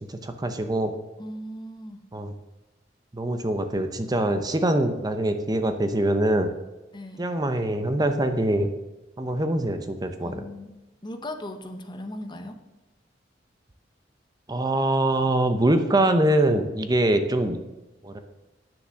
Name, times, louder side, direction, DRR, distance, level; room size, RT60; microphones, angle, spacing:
voice 1, 0.1-0.9 2.1-2.3 3.1-6.5 7.2-8.7 9.2-10.4 14.5-17.6 18.0-18.2, right 1 dB, 20° right, 7 dB, 0.7 m, -23 dB
voice 2, 1.2-2.0 6.9-7.2 10.2-10.7 11.0-12.6, left 1 dB, 25° left, 7 dB, 1.0 m, -37 dB
10.0 x 6.9 x 6.2 m, 1.0 s
head